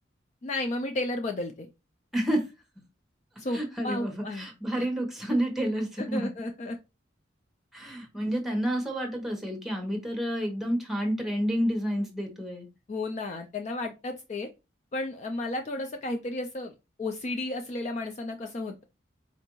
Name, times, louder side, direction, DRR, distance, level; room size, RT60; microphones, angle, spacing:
voice 1, 0.4-1.7 3.4-4.5 4.8-4.9 6.0-6.8 12.9-14.5 14.9-18.8, left 2 dB, 40° left, 5 dB, 0.3 m, -33 dB
voice 2, 2.1-2.5 3.5-6.3 7.7-12.7, equal, ahead, 1 dB, 0.9 m, -29 dB
4.4 x 2.4 x 3.0 m, 0.26 s
head